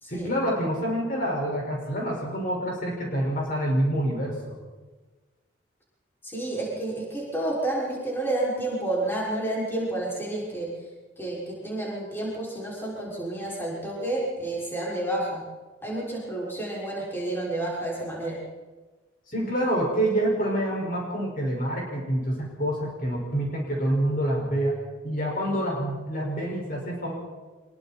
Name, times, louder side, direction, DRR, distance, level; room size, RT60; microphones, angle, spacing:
voice 1, 0.1-4.5 19.3-24.8 25.0-27.1, right 1 dB, 45° left, -2 dB, 5.9 m, -27 dB
voice 2, 6.2-10.7 11.2-15.4 15.8-18.4, right 1 dB, 10° left, -5 dB, 6.3 m, -30 dB
25.5 x 22.5 x 4.5 m, 1.3 s
head